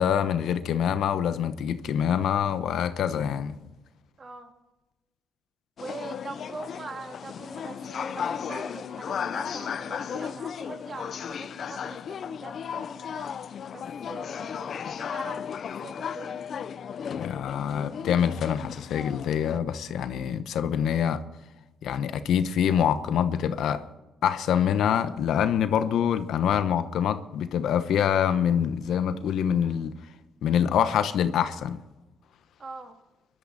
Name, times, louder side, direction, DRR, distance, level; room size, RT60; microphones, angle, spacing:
voice 1, 0.0-3.6 17.2-21.2 21.8-23.8 24.2-29.9 30.4-31.8, left 8 dB, 75° left, 1.0 m, -25 dB
voice 2, 4.2-4.5 5.8-13.3 13.7-16.4 32.6-33.0, right 3 dB, 40° right, 2.6 m, -42 dB
sound 1, 5.8-19.6, left 7 dB, 55° left, 0.6 m, -35 dB
22.0 x 12.5 x 4.1 m
cardioid pair, 90°, 0 cm